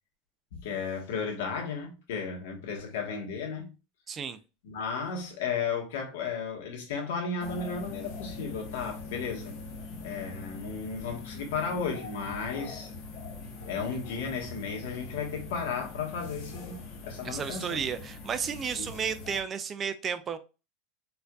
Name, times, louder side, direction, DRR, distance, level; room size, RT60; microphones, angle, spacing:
voice 1, 0.5-3.7 4.6-9.5 10.0-12.9 13.7-17.8 18.8-18.9, left 5 dB, 75° left, 1.3 m, -34 dB
voice 2, 4.1-4.4 17.2-20.4, right 7 dB, 20° right, 0.3 m, -33 dB
sound 1, 7.4-19.4, left 3 dB, 50° left, 1.0 m, -42 dB
4.4 x 2.6 x 2.2 m
supercardioid pair, 165°, 0 cm